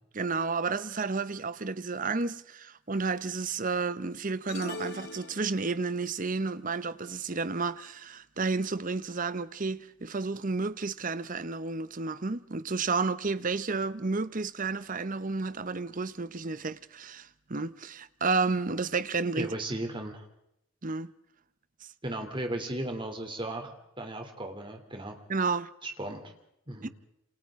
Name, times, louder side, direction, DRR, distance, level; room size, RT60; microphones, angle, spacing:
voice 1, 0.1-19.5 20.8-21.1 21.8-21.9 25.3-25.7 26.8-26.9, right 4 dB, 40° right, 0.8 m, -31 dB
sound 1, 4.5-6.0, left 2 dB, 50° left, 2.1 m, -41 dB
voice 2, 19.4-20.2 22.0-25.2 25.8-26.3 26.7-26.9, right 1 dB, 25° right, 3.0 m, -36 dB
28.0 x 27.5 x 3.7 m
head